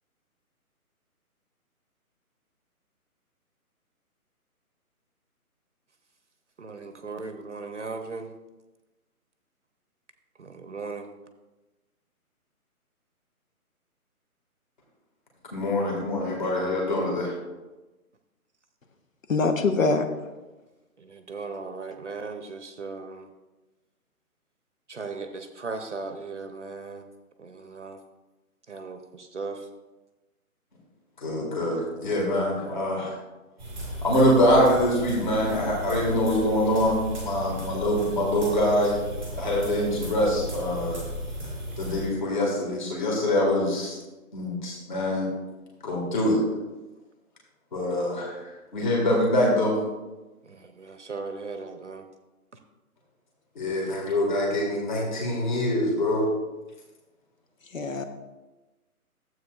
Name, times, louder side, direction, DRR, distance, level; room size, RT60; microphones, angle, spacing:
voice 1, 6.6-8.3 10.4-11.1 21.0-23.3 24.9-27.0 27.4-28.0 28.7-29.7 50.4-52.0, right 4 dB, 50° right, 7 dB, 0.8 m, -37 dB
voice 2, 15.5-17.3 31.2-33.1 34.0-39.0 39.4-41.0 41.8-44.0 44.3-45.3 45.8-46.4 47.7-48.4 48.7-49.8 53.6-56.3, left 1 dB, 30° left, -2 dB, 1.8 m, -24 dB
voice 3, 19.3-20.1 57.7-58.0, left 3 dB, 60° left, 7 dB, 1.0 m, -23 dB
sound 1, 33.6-42.0, equal, ahead, 1.0 m, -35 dB
12.5 x 7.8 x 2.4 m, 1.1 s
hypercardioid pair, 175°, 44 cm